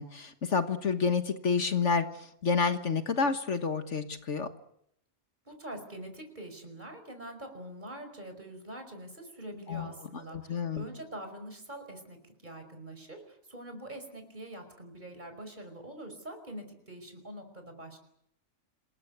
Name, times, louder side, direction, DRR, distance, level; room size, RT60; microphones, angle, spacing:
voice 1, 0.0-2.1 2.4-4.5 9.7-10.8, left 5 dB, 65° left, 8 dB, 1.8 m, -29 dB
voice 2, 5.5-18.0, right 1 dB, 35° right, 6 dB, 5.4 m, -44 dB
27.5 x 21.0 x 8.2 m, 0.74 s
omnidirectional pair, 1.3 m